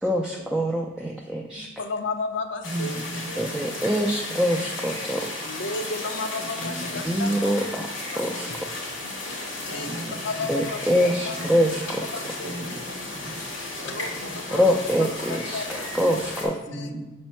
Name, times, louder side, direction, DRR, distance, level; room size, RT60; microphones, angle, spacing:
voice 1, 0.0-1.7 3.4-5.4 7.0-7.9 8.2-8.5 10.5-12.3 14.5-16.6, equal, 5° right, -2 dB, 0.3 m, -25 dB
voice 2, 1.6-2.9 3.3-3.4 5.5-7.5 8.1-8.2 8.5-8.6 9.5-11.6 12.1-12.6 13.8-14.6 15.0-15.9 16.4-16.9, left 3 dB, 65° left, 5 dB, 0.7 m, -33 dB
sound 1, 2.6-16.5, left 2 dB, 90° left, 2.2 m, -34 dB
voice 3, 2.6-3.3 6.4-7.0 9.7-10.5 11.4-11.5 12.4-13.4 14.0-14.4 16.7-17.0, right 1 dB, 40° right, 2 dB, 0.9 m, -36 dB
6.0 x 4.3 x 4.4 m, 1.1 s
head